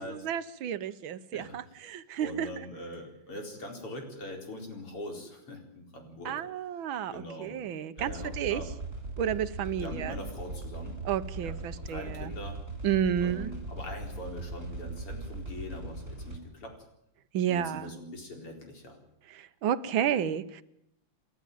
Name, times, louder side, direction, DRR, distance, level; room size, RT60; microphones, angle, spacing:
voice 1, 0.0-2.5 6.2-8.6 9.2-10.1 11.0-12.3 12.8-13.5 17.3-17.9 19.3-20.6, right 9 dB, 65° right, 13 dB, 1.7 m, -31 dB
voice 2, 1.3-6.4 7.1-7.6 8.0-8.7 9.8-11.0 11.4-12.6 13.2-16.8 17.5-19.0, left 1 dB, 85° left, 3 dB, 5.4 m, -42 dB
sound 1, 8.0-16.4, right 2 dB, 30° right, 5.9 m, -39 dB
29.0 x 12.0 x 9.2 m, 0.79 s
omnidirectional pair, 2.4 m